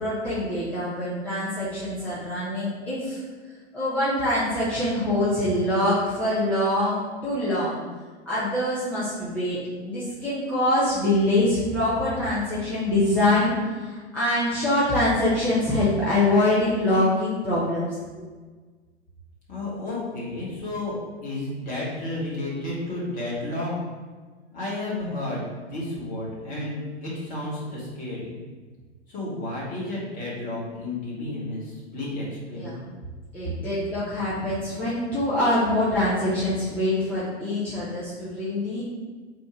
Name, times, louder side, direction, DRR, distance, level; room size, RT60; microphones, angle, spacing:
voice 1, 0.0-3.2 3.7-7.8 8.3-13.5 13.8-17.9 18.2-18.3 32.6-32.8 33.3-38.8, left 1 dB, 5° left, -11 dB, 0.7 m, -24 dB
voice 2, 19.5-21.0 21.2-23.7 24.5-28.3 29.1-32.8, left 2 dB, 25° left, -5 dB, 1.4 m, -32 dB
3.7 x 2.5 x 4.5 m, 1.4 s
figure-of-eight pair, 105°, 34 cm